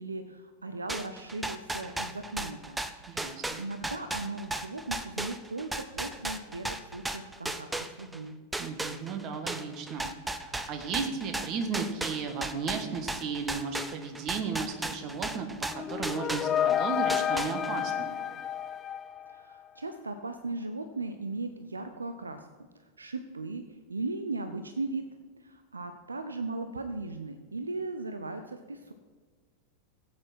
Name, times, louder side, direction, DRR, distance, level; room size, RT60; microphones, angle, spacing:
voice 1, 0.0-2.8 3.1-8.4 19.3-22.5 22.7-25.0 25.4-28.9, right 3 dB, 75° right, 8 dB, 0.6 m, -37 dB
sound 1, 0.9-8.2 8.5-16.8 17.1-17.9, right 2 dB, 5° right, 0.7 m, -35 dB
voice 2, 3.1-3.6 8.6-10.1 10.4-15.5 15.7-18.1, right 5 dB, 40° right, 6 dB, 1.5 m, -35 dB
sound 2, 15.7-19.6, left 9 dB, 25° left, 0.3 m, -30 dB
16.0 x 8.6 x 4.4 m, 1.4 s
figure-of-eight pair, 90°, 0 cm